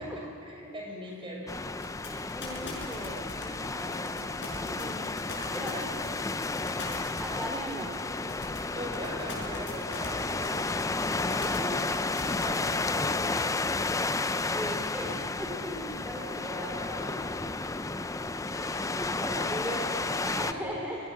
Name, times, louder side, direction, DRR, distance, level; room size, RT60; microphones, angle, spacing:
voice 1, 0.0-1.7 3.4-4.1 5.5-6.0 8.4-13.7 15.5-16.0 16.9-17.3 20.4-20.8, equal, 25° right, -1 dB, 6.4 m, -42 dB
sound 1, 1.5-20.5, left 3 dB, 15° left, 0.5 m, -32 dB
sound 2, 1.8-12.7, left 3 dB, 55° left, 7.4 m, -42 dB
voice 2, 2.3-3.3 3.7-4.2 4.5-5.1 5.5-5.7 7.2-7.9 11.5-11.7 12.0-12.1 14.5-15.5 16.0-17.3 18.5-21.0, equal, 5° right, -3 dB, 3.0 m, -38 dB
29.5 x 22.0 x 6.5 m, 2.9 s
head